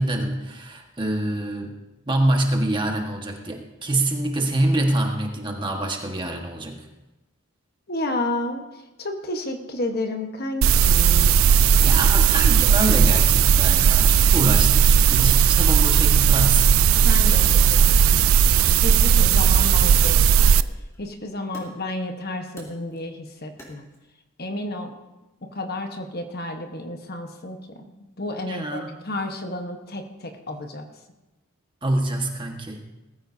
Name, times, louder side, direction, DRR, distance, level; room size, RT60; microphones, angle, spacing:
voice 1, 0.0-1.7 2.1-6.8 11.8-16.7 28.5-28.9 31.8-32.8, right 1 dB, 20° right, 2 dB, 1.5 m, -25 dB
voice 2, 7.9-11.4 17.0-20.6 21.0-23.9 24.4-24.9 25.4-30.8, left 1 dB, 45° left, 4 dB, 1.3 m, -31 dB
sound 1, 10.6-20.6, right 7 dB, 75° right, 0.4 m, -16 dB
Wood, 10.7-12.4 12.9-13.6 14.0-15.9 16.1-18.1 18.5-24.0, equal, 15° left, 3.2 m, -46 dB
20.5 x 14.0 x 2.8 m, 1.0 s
head